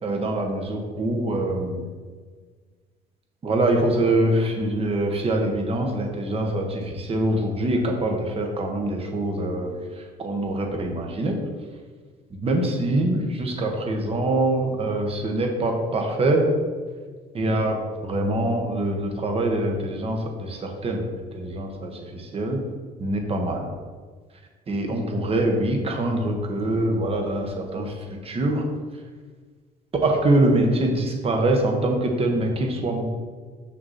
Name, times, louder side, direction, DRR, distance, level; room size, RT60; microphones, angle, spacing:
voice 1, 0.0-1.8 3.4-11.3 12.3-16.4 17.3-22.6 23.0-23.7 24.7-28.6 30.0-33.0, right 1 dB, 35° right, 3 dB, 1.3 m, -24 dB
6.3 x 6.0 x 4.2 m, 1.5 s
cardioid pair, 110°, 17 cm